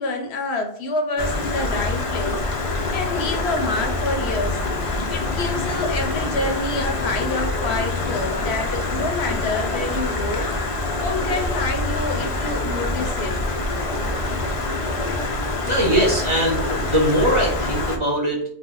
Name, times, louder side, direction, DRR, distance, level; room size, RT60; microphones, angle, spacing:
voice 1, 0.0-2.4 2.9-4.6 5.1-10.4 11.0-13.3, left 2 dB, 75° left, 4 dB, 0.9 m, -27 dB
Stream, 1.2-18.0, left 2 dB, 55° left, 0.3 m, -25 dB
voice 2, 15.7-18.4, equal, 30° right, -3 dB, 0.7 m, -21 dB
2.6 x 2.3 x 3.7 m, 0.64 s
omnidirectional pair, 1.1 m